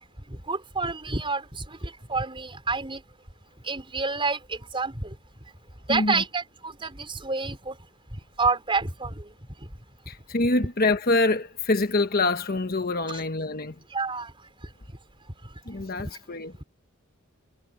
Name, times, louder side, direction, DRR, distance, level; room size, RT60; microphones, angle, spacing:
voice 1, 0.3-3.0 3.6-5.1 5.9-7.7 8.4-9.2 13.9-14.3, right 4 dB, 25° right, 5.3 m, -28 dB
voice 2, 5.9-6.2 10.1-13.8 15.6-16.6, left 2 dB, 45° left, 1.2 m, -25 dB
head